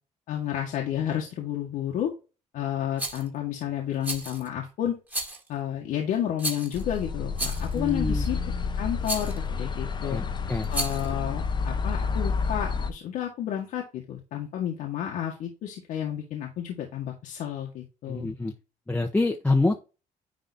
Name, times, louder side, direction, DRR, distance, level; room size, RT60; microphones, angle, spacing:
voice 1, 0.3-2.1 2.5-5.0 5.5-8.4 8.7-10.2 10.7-18.3, left 10 dB, 85° left, 0 dB, 1.8 m, -31 dB
Rattle, 3.0-3.3 4.0-4.5 5.1-5.5 6.4-6.8 7.3-7.8 9.0-9.4 10.6-11.1, right 1 dB, 10° right, 2.0 m, -32 dB
sound 1, 6.7-12.9, left 5 dB, 35° left, 1.0 m, -29 dB
voice 2, 7.7-8.3 10.0-10.7 18.1-18.5 18.9-19.8, left 2 dB, 10° left, 2 dB, 1.0 m, -26 dB
10.5 x 3.8 x 4.2 m, 0.30 s
cardioid pair, 120°, 14 cm